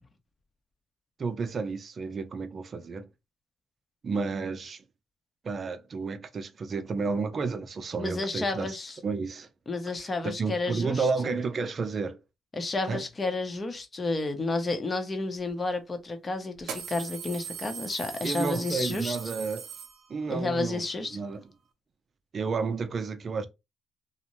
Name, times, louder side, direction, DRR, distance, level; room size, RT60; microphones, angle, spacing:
voice 1, 1.2-3.1 4.0-4.8 5.4-8.8 9.0-9.5 10.0-12.2 12.8-13.0 18.2-19.7 20.1-20.8 21.1-21.4 22.3-23.5, right 4 dB, 45° right, 0.5 m, -31 dB
voice 2, 8.0-8.9 9.7-11.3 12.5-19.2 20.3-21.2, left 3 dB, 30° left, 0.7 m, -31 dB
sound 1, 15.5-15.6 16.6-20.4, right 7 dB, 80° right, 0.7 m, -40 dB
2.6 x 2.1 x 3.0 m
cardioid pair, 90°, 0 cm